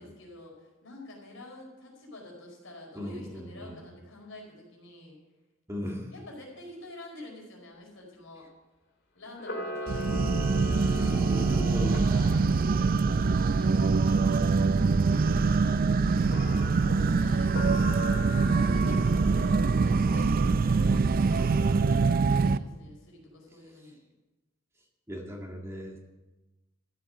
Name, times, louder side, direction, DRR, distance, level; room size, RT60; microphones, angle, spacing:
voice 1, 0.0-5.2 6.1-8.4 9.1-10.2 12.0-14.4 15.0-18.1 18.4-24.0, left 1 dB, 80° left, 0 dB, 4.9 m, -48 dB
voice 2, 3.0-3.8 5.7-6.1 10.6-12.0 18.8-19.1 25.1-26.0, left 1 dB, 15° right, 0 dB, 2.0 m, -38 dB
Camera, 9.3-12.6 16.2-17.0 17.5-19.3, left 1 dB, 60° left, 2.8 m, -38 dB
sound 1, 9.9-22.6, right 4 dB, 45° right, 0.4 m, -24 dB
14.0 x 7.6 x 7.8 m, 1.1 s
head